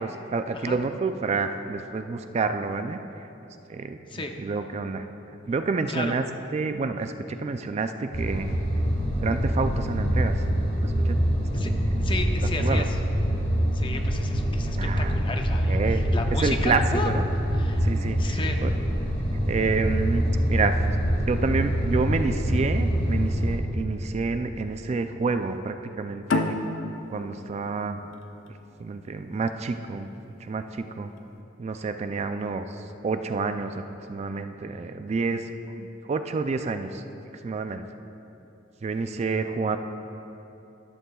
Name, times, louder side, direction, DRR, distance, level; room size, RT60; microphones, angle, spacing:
voice 1, 0.0-3.3 3.7-5.1 5.5-6.3 6.5-8.5 9.2-10.4 10.8-11.8 12.6-12.9 14.8-15.1 15.7-16.0 16.3-17.3 17.8-18.7 19.5-20.8 21.3-26.6 27.1-28.0 28.8-31.1 31.6-35.5 35.8-37.0 37.4-37.8 38.8-39.8, right 4 dB, 35° right, 8 dB, 0.3 m, -29 dB
sound 1, 8.1-23.5, equal, 50° left, 2.0 m, -25 dB
voice 2, 12.0-12.9 13.7-17.1 17.6-17.9 18.2-18.6, left 3 dB, 25° left, 4 dB, 0.6 m, -33 dB
sound 2, 26.3-29.5, left 2 dB, 85° left, 0.6 m, -30 dB
13.0 x 11.0 x 2.3 m, 2.9 s
head